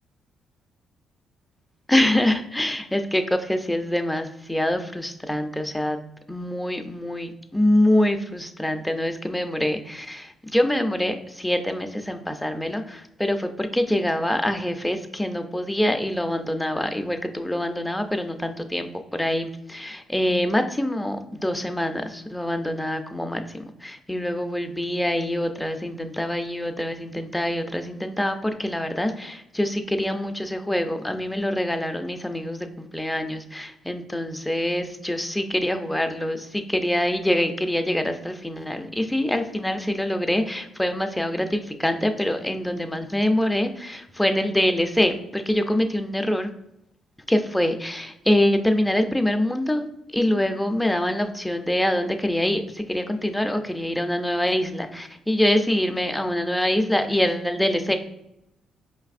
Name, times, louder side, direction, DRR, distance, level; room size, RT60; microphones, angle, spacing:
voice 1, 1.9-6.0 6.3-46.5 47.3-58.0, left 1 dB, 5° left, 6 dB, 0.4 m, -25 dB
4.6 x 3.3 x 2.4 m, 0.83 s
cardioid pair, 90°, 0 cm